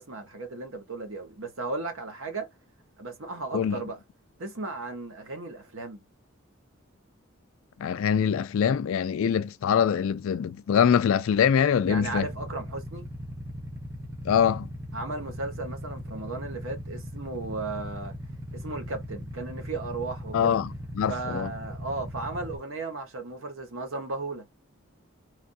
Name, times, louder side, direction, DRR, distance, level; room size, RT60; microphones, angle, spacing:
voice 1, 0.0-2.5 3.0-4.0 4.4-6.0 11.8-13.1 14.9-18.1 18.5-20.6 21.1-24.5, right 3 dB, 70° right, 1.0 m, -35 dB
voice 2, 7.8-12.3 14.2-14.7 20.3-20.7 20.9-21.5, left 8 dB, 70° left, 0.3 m, -23 dB
Motorcycle / Idling, 11.8-22.6, equal, 15° right, 0.8 m, -39 dB
3.2 x 2.4 x 2.6 m
head